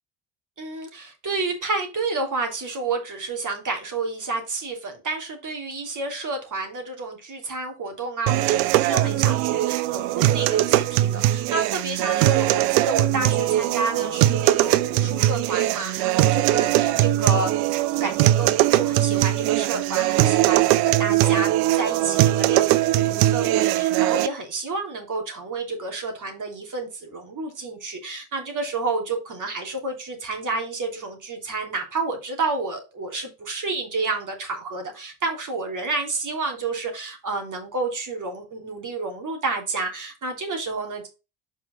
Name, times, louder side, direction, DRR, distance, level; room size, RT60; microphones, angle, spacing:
voice 1, 0.6-41.1, right 3 dB, 40° right, 3 dB, 3.2 m, -30 dB
sound 1, 8.3-24.3, right 14 dB, 85° right, 0.6 m, -20 dB
5.5 x 4.7 x 5.2 m, 0.29 s
supercardioid pair, 70°, 46 cm